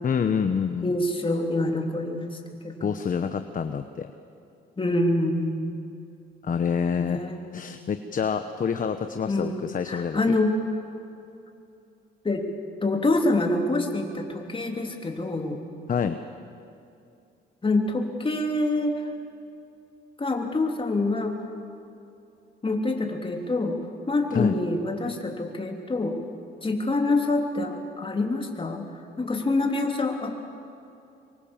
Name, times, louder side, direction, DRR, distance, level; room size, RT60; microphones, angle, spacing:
voice 1, 0.0-0.9 2.8-4.1 6.4-7.2 7.5-10.2 15.9-16.2 24.3-24.6, left 6 dB, 45° left, 8 dB, 1.1 m, -27 dB
voice 2, 0.8-2.9 4.8-5.7 7.0-7.9 9.2-10.5 12.2-12.4 12.8-15.6 17.6-19.0 20.2-21.3 22.6-23.8 24.1-26.2 26.6-28.9 29.2-30.4, left 2 dB, 25° left, 3 dB, 3.3 m, -26 dB
25.0 x 23.5 x 7.3 m, 2.6 s
cardioid pair, 90°, 20 cm